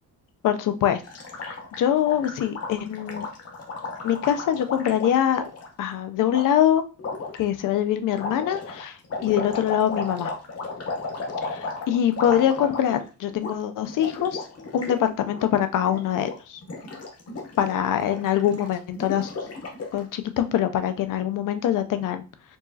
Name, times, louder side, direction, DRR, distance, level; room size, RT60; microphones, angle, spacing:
voice 1, 0.4-1.0 1.4-3.3 4.0-5.4 5.8-6.8 7.4-10.3 11.4-14.5 14.7-16.6 17.6-19.3 19.9-22.2, left 10 dB, 55° left, 9 dB, 0.5 m, -24 dB
Gurgling, 1.0-5.7 6.3-6.4 7.0-7.4 8.1-13.1 13.3-13.5 13.8-15.0 15.2-15.5 15.8-16.3 16.6-20.0, left 3 dB, 40° left, 0.9 m, -34 dB
4.6 x 3.0 x 2.7 m, 0.35 s
cardioid pair, 160°, 38 cm